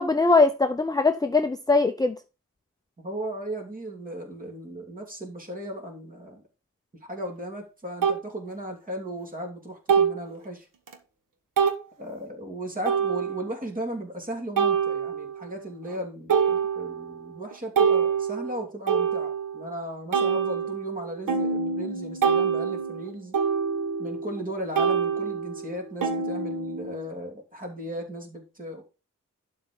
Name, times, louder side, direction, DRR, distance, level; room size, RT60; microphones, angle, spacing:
voice 1, 0.0-2.2, left 3 dB, 10° left, 0.5 m, -21 dB
voice 2, 3.0-6.4 7.0-10.7 12.0-23.4 24.0-28.8, right 1 dB, 25° right, 2.7 m, -36 dB
sound 1, 7.2-7.3 8.0-8.2 9.9-10.3 10.9-11.0 11.6-11.8 12.9-13.5 14.6-15.4 15.9-16.0 16.3-17.1 17.5-19.7 20.1-24.5 24.8-27.1, right 6 dB, 80° right, 1.6 m, -25 dB
11.5 x 4.4 x 5.1 m
wide cardioid pair, 160°, 32 cm